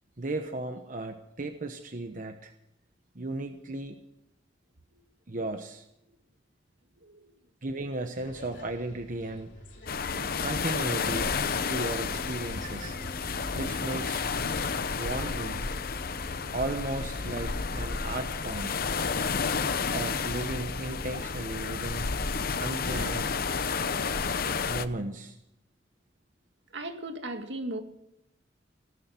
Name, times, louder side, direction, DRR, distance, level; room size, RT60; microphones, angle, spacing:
voice 1, 0.2-2.5 3.1-4.0 5.3-5.9 7.6-9.5 10.1-11.3 11.7-13.0 13.5-14.3 15.0-15.7 16.5-18.7 19.9-22.1 22.6-23.4 24.7-25.4, right 2 dB, 45° right, 6 dB, 1.1 m, -35 dB
voice 2, 7.0-7.3 26.7-27.8, right 1 dB, 75° right, 5 dB, 2.2 m, -37 dB
sound 1, 8.1-16.1, left 1 dB, 80° left, 3.2 m, -51 dB
sound 2, 9.9-24.9, left 5 dB, 55° left, 0.8 m, -31 dB
sound 3, 10.6-20.0, left 2 dB, 15° right, 4.6 m, -50 dB
18.5 x 12.5 x 6.0 m, 0.83 s
head